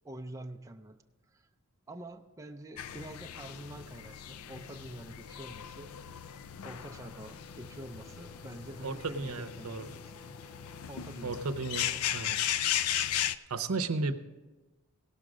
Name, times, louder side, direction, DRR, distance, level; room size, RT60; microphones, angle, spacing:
voice 1, 0.0-1.0 1.3-1.5 1.9-5.9 6.6-10.1 10.9-11.5 11.9-12.0, right 1 dB, 15° right, 4 dB, 0.4 m, -46 dB
sound 1, 2.8-13.4, left 10 dB, 85° left, 0.4 m, -36 dB
Brass instrument, 6.7-10.9, right 1 dB, 40° left, 1.2 m, -57 dB
voice 2, 8.8-9.8 11.2-12.4 13.5-14.2, right 3 dB, 80° right, 9 dB, 0.7 m, -34 dB
17.0 x 6.4 x 4.9 m, 1.2 s
head